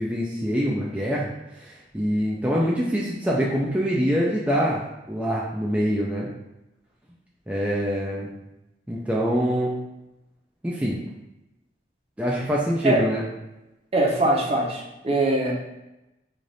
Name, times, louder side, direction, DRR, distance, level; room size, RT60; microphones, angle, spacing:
voice 1, 0.0-1.3 1.6-4.8 5.1-6.3 7.5-8.3 8.9-9.8 10.6-11.0 12.2-13.2, equal, 10° right, -5 dB, 0.4 m, -24 dB
voice 2, 13.9-15.5, right 1 dB, 35° right, -2 dB, 0.7 m, -22 dB
3.3 x 2.5 x 3.9 m, 0.95 s
head